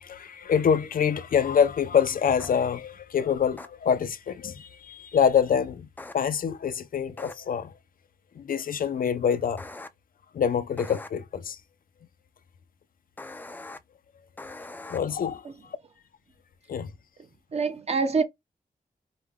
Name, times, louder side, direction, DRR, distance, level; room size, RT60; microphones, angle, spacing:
voice 1, 0.0-5.9 6.1-7.7 8.4-9.6 10.3-11.6 14.9-15.4 16.7-16.9, left 7 dB, 70° left, 0.5 m, -25 dB
sound 1, 2.4-2.5 3.6-3.7 6.0-6.2 7.2-7.3 9.6-9.9 10.8-11.1 13.2-13.8 14.4-15.0, left 2 dB, 10° left, 0.4 m, -41 dB
voice 2, 17.2-18.2, right 4 dB, 45° right, 0.7 m, -27 dB
4.7 x 2.2 x 3.5 m
wide cardioid pair, 165°, 15 cm